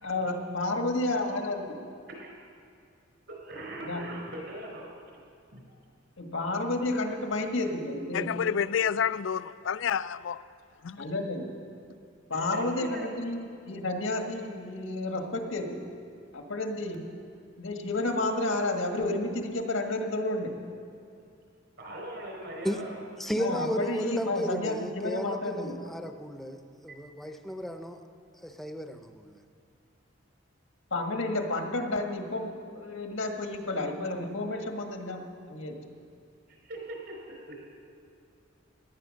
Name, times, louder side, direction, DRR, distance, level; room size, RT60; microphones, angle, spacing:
voice 1, 0.0-1.6 3.8-4.0 6.2-8.3 11.0-11.5 12.3-15.8 16.3-17.1 17.6-20.5 23.4-25.8 30.9-35.7, left 2 dB, 85° left, 1.6 m, -31 dB
voice 2, 3.3-4.8 5.5-5.6 12.3-13.1 21.8-23.0 36.7-37.0 37.5-37.6, right 1 dB, 60° right, 4.6 m, -40 dB
voice 3, 8.1-10.4 10.8-11.0, left 7 dB, 70° left, 0.4 m, -29 dB
voice 4, 23.2-28.0 28.4-29.4, equal, ahead, 0.7 m, -34 dB
17.0 x 11.0 x 6.4 m
head